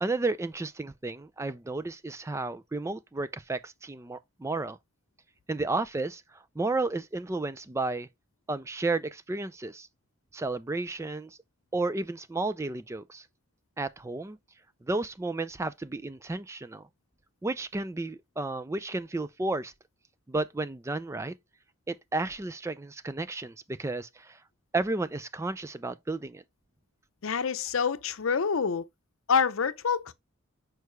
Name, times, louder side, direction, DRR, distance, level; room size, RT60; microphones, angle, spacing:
voice 1, 0.0-4.8 5.5-6.2 6.6-8.1 8.5-9.9 10.3-11.4 11.7-13.3 13.8-14.4 14.8-16.8 17.4-19.7 20.3-21.3 21.9-24.4 24.7-26.4, right 2 dB, 15° right, 0.3 m, -32 dB
voice 2, 27.2-28.8 29.3-30.1, left 6 dB, 80° left, 0.6 m, -27 dB
6.5 x 4.6 x 3.2 m
head